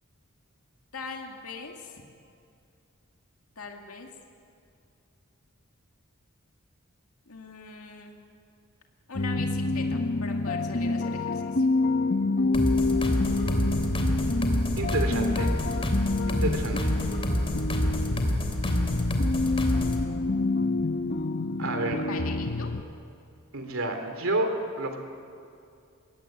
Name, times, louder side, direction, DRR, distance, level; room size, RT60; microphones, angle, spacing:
voice 1, 0.9-2.0 3.6-4.1 7.3-8.3 9.1-11.7 21.9-22.7, left 4 dB, 80° left, 2 dB, 2.2 m, -41 dB
sound 1, 9.1-22.8, left 3 dB, 50° left, 1.0 m, -27 dB
sound 2, 12.5-20.0, equal, 25° left, 3.0 m, -28 dB
voice 2, 14.8-15.6 16.3-17.0 21.6-22.0 23.5-25.0, right 2 dB, 70° right, 5 dB, 3.2 m, -30 dB
22.0 x 16.5 x 9.5 m, 2.5 s
head